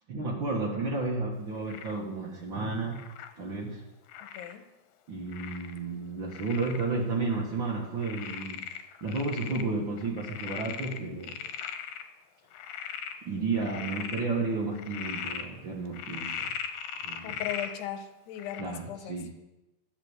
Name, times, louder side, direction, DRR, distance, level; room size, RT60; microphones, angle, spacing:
voice 1, 0.1-3.0 3.4-3.8 5.1-8.6 9.0-11.4 13.2-16.5 17.0-17.3 18.6-19.3, right 3 dB, 65° right, -2 dB, 1.2 m, -32 dB
Frog, 1.7-2.0 2.9-3.3 4.1-4.5 5.3-5.8 6.3-6.8 7.3-7.4 8.0-9.7 10.0-12.0 12.5-13.2 13.6-14.2 14.8-15.5 15.9-17.7 18.4-18.6, left 8 dB, 70° left, 2.5 m, -38 dB
voice 2, 4.2-4.7 17.2-19.2, left 11 dB, 85° left, 9 dB, 3.1 m, -38 dB
13.0 x 10.0 x 8.1 m, 0.98 s
omnidirectional pair, 4.7 m